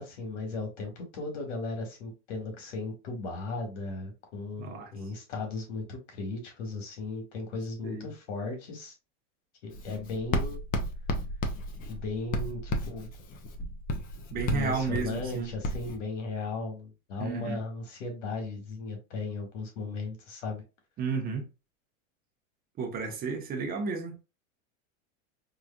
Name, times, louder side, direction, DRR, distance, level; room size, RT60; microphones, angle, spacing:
voice 1, 0.0-8.9 9.6-10.6 11.9-13.1 14.5-20.6, left 3 dB, 80° left, 1.8 m, -36 dB
voice 2, 4.6-4.9 7.8-8.1 14.3-15.5 17.2-17.6 21.0-21.5 22.8-24.2, right 5 dB, 25° right, 0.8 m, -32 dB
Writing, 9.7-16.0, left 1 dB, 25° left, 0.4 m, -34 dB
4.8 x 2.5 x 2.2 m
supercardioid pair, 150°, 37 cm